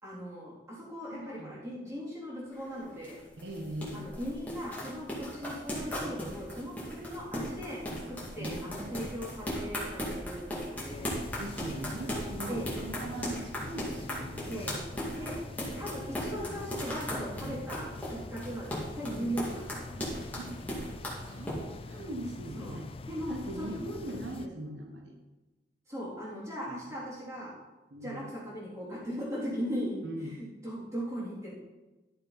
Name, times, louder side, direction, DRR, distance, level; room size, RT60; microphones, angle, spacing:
voice 1, 0.0-3.2 3.9-7.8 8.1-11.1 12.5-12.8 14.5-14.8 15.1-15.4 15.7-20.2 22.5-22.8 23.1-23.8 25.9-27.5 28.0-31.5, equal, 15° right, -8 dB, 3.4 m, -38 dB
voice 2, 1.1-1.5 3.4-4.1 7.9-9.1 11.4-14.8 17.4-17.6 19.2-19.3 20.4-20.5 21.2-22.9 23.3-25.2 26.7-26.8 27.9-28.3 30.0-30.4, right 1 dB, 80° right, 2 dB, 1.1 m, -41 dB
sound 1, 2.5-21.6, equal, 10° left, 2.2 m, -37 dB
sound 2, 10.9-24.5, left 3 dB, 30° left, 0.3 m, -44 dB
12.0 x 6.7 x 4.1 m, 1.1 s
head